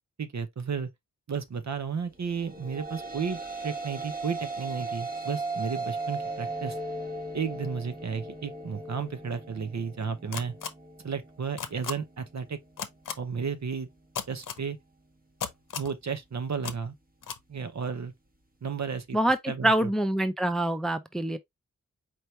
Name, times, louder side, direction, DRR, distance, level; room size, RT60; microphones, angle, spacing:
voice 1, 0.2-0.9 1.3-6.8 7.3-10.5 11.0-12.6 13.2-13.9 14.3-14.8 15.8-16.9 17.5-18.1 18.6-19.2 19.5-19.9, right 6 dB, 55° right, 0.8 m, -33 dB
sound 1, 2.4-11.0, right 2 dB, 25° right, 1.2 m, -36 dB
sound 2, 10.3-10.7 11.6-11.9 12.8-13.1 14.1-14.6 15.4-15.9 16.6-16.7 17.2-17.4, left 7 dB, 65° left, 0.8 m, -34 dB
voice 2, 19.1-21.4, right 1 dB, ahead, 0.5 m, -25 dB
4.6 x 2.8 x 3.1 m
wide cardioid pair, 65°, 33 cm